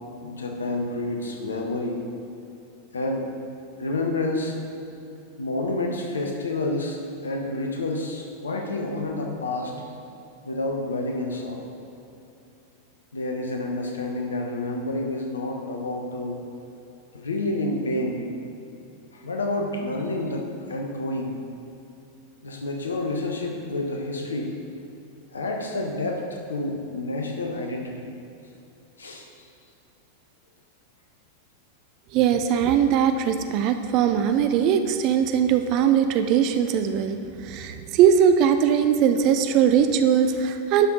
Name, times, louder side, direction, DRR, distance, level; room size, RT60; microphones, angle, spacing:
voice 1, 0.2-2.0 2.9-3.3 3.8-4.6 5.4-9.7 10.4-11.7 13.1-16.4 17.1-18.2 19.1-21.4 22.4-24.5 25.3-28.1 29.0-29.3, left 2 dB, 70° left, 2 dB, 1.2 m, -29 dB
voice 2, 32.1-40.9, right 8 dB, 40° right, 8 dB, 0.5 m, -20 dB
11.5 x 5.7 x 3.9 m, 2.8 s
figure-of-eight pair, 90°, 0 cm